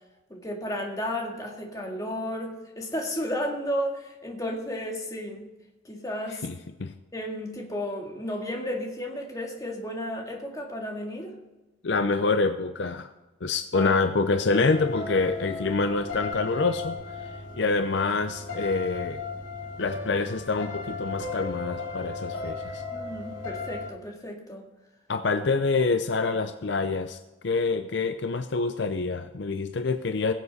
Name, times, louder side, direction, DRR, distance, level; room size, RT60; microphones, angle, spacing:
voice 1, 0.3-5.4 5.8-6.5 7.1-11.3 13.7-13.9 22.9-24.6, equal, 20° left, 1 dB, 1.9 m, -33 dB
voice 2, 11.8-13.1 13.4-17.0 17.6-19.2 19.8-22.8 25.1-30.3, left 3 dB, 60° left, 9 dB, 0.6 m, -26 dB
sound 1, 14.5-23.9, left 3 dB, 85° left, 2.6 m, -36 dB
21.0 x 7.4 x 4.1 m, 1.1 s
head